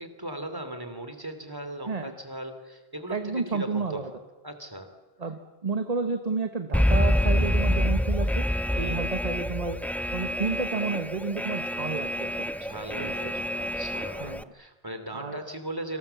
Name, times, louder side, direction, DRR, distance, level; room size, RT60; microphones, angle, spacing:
voice 1, 0.0-4.0 4.4-4.9 8.7-9.0 12.6-16.0, right 1 dB, 20° right, 8 dB, 3.0 m, -38 dB
voice 2, 3.1-4.1 5.2-8.5 8.8-9.8 10.1-12.5 13.0-13.1 14.2-14.4 15.1-15.4, right 4 dB, 40° right, 7 dB, 1.5 m, -31 dB
Alarm, 6.7-14.4, equal, ahead, 0.6 m, -27 dB
28.5 x 26.5 x 7.1 m, 1.2 s
omnidirectional pair, 1.0 m